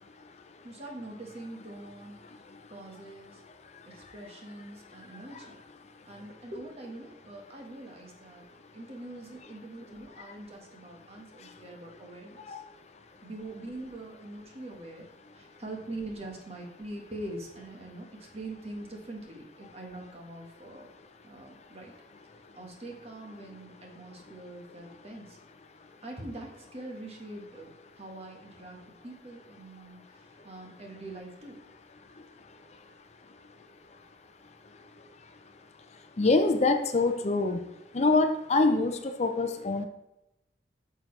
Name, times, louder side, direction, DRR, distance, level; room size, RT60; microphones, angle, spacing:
voice 1, 0.6-2.2 2.7-3.4 3.8-5.5 6.1-8.5 8.7-12.6 13.2-15.1 15.3-20.9 21.2-21.9 22.5-25.4 26.0-27.7 27.9-31.6, right 2 dB, 35° right, 0 dB, 1.5 m, -43 dB
voice 2, 36.2-37.6 37.9-39.9, left 3 dB, 40° left, 7 dB, 0.5 m, -25 dB
9.1 x 6.3 x 3.3 m, 0.90 s
head